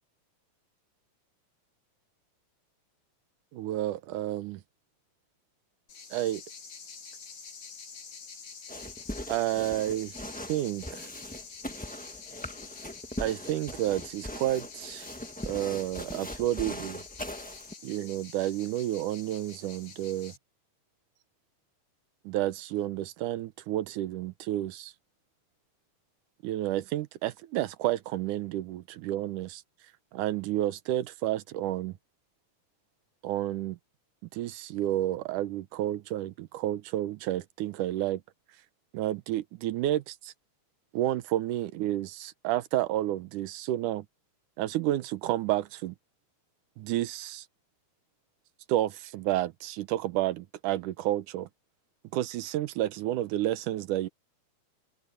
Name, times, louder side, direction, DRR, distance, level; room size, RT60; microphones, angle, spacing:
voice 1, 3.5-4.6 6.1-6.4 9.3-10.1 10.5-11.1 13.2-15.1 15.5-17.0 17.8-20.3 22.3-24.9 26.4-29.6 30.1-32.0 33.2-33.8 34.3-38.2 38.9-40.3 41.0-44.1 44.6-46.0 46.8-47.5 48.7-51.5 52.1-54.1, right 14 dB, 80° right, 2.4 m, -30 dB
sound 1, 5.9-20.4, left 5 dB, 85° left, 5.5 m, -47 dB
sound 2, 8.7-17.7, equal, 10° left, 0.3 m, -40 dB
omnidirectional pair, 3.6 m